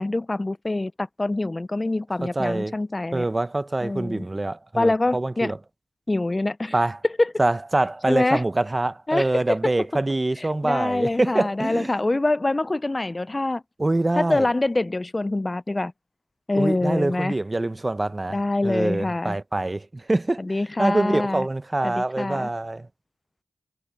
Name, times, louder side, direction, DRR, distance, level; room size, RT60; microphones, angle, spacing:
voice 1, 0.0-3.2 3.8-4.2 4.7-5.5 6.1-6.7 7.2-7.3 8.1-8.4 9.1-9.7 10.4-13.6 14.2-15.9 16.5-17.3 18.3-19.4 20.4-21.4 21.8-22.5, left 2 dB, 30° left, 0.5 m, -25 dB
voice 2, 2.2-2.8 3.1-5.6 6.7-7.0 7.4-11.9 13.8-14.4 16.5-20.4 20.8-22.9, right 2 dB, 30° right, 0.9 m, -25 dB
cardioid pair, 50°, 0 cm